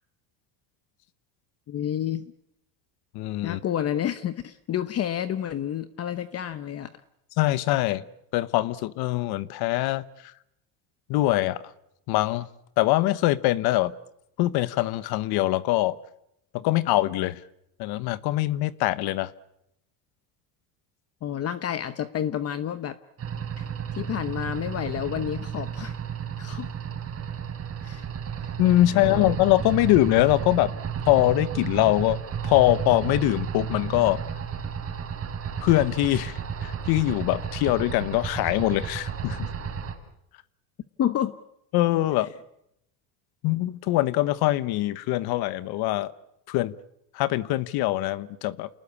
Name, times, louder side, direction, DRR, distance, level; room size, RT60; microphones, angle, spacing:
voice 1, 1.7-2.3 3.4-6.9 21.2-23.0 23.6-23.7 24.0-26.0 26.4-26.7 27.8-28.1 28.9-29.4 41.0-41.4, left 10 dB, 35° left, 11 dB, 1.0 m, -30 dB
voice 2, 3.1-3.6 7.4-8.0 8.3-10.0 11.1-11.6 12.1-12.5 12.8-13.9 14.4-15.9 16.5-17.4 17.8-19.3 28.6-30.7 31.1-34.2 35.6-39.5 41.7-42.3 43.4-46.1 46.5-46.7 47.1-48.7, left 16 dB, 65° left, 15 dB, 1.2 m, -23 dB
sound 1, 23.2-39.9, right 7 dB, 35° right, 4.0 m, -33 dB
29.0 x 19.5 x 8.5 m, 0.81 s
supercardioid pair, 125°, 42 cm